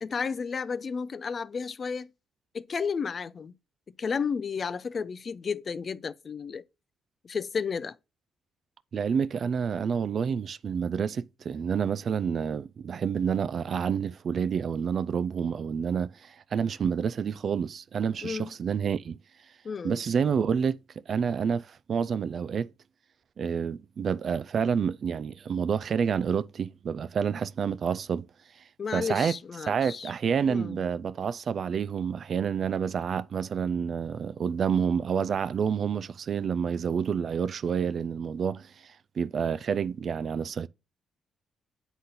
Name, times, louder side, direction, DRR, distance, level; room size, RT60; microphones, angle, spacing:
voice 1, 0.0-2.1 2.5-3.5 4.0-6.6 7.2-8.0 18.2-18.5 19.6-20.0 28.8-30.1 30.5-30.8, left 5 dB, 40° left, 0.4 m, -32 dB
voice 2, 8.9-19.2 19.8-20.8 21.1-22.7 23.4-28.3 28.9-29.3 29.7-40.7, right 7 dB, 55° right, 0.3 m, -28 dB
7.8 x 4.1 x 3.8 m
cardioid pair, 90°, 0 cm